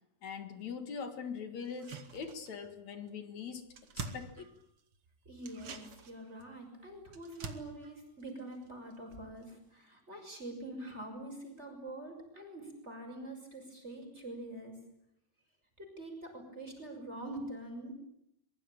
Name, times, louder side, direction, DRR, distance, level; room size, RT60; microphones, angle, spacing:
voice 1, 0.2-3.7 4.0-4.5, left 6 dB, 55° left, 9 dB, 2.6 m, -42 dB
sound 1, 1.6-2.8 3.1-3.2 3.4-5.0 5.4-9.1 9.4-9.5, right 5 dB, 45° right, 2.1 m, -47 dB
voice 2, 5.2-14.8 15.8-18.0, right 1 dB, 15° right, 3 dB, 6.3 m, -45 dB
24.0 x 23.0 x 8.8 m, 0.75 s
omnidirectional pair, 4.6 m